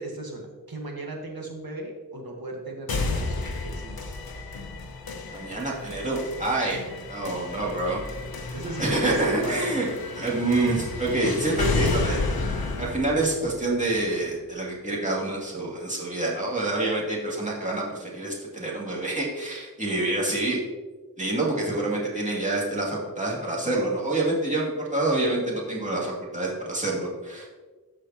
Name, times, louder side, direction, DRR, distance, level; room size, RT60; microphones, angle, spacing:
voice 1, 0.0-4.2 8.5-9.8, right 2 dB, 80° right, 1 dB, 1.5 m, -36 dB
sound 1, 2.9-14.8, left 3 dB, 80° left, 0.9 m, -32 dB
voice 2, 5.3-8.0 8.8-9.9 10.2-12.2 12.8-20.6 21.2-27.6, right 2 dB, 20° right, -5 dB, 2.4 m, -27 dB
13.0 x 5.0 x 2.9 m, 1.3 s
wide cardioid pair, 65°, 36 cm